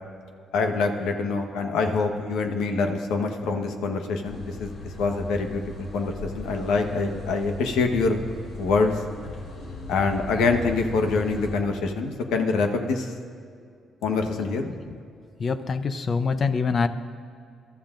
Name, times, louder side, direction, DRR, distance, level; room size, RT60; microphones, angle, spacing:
voice 1, 0.5-4.7 5.0-8.2 8.6-9.0 9.9-13.1 14.0-14.7, left 4 dB, 90° left, 4 dB, 1.2 m, -25 dB
sound 1, 4.2-11.5, left 2 dB, 70° left, 2.8 m, -37 dB
voice 2, 15.4-16.9, left 5 dB, 45° left, 10 dB, 0.7 m, -25 dB
23.5 x 13.0 x 2.6 m, 2.3 s
cardioid pair, 90°, 0 cm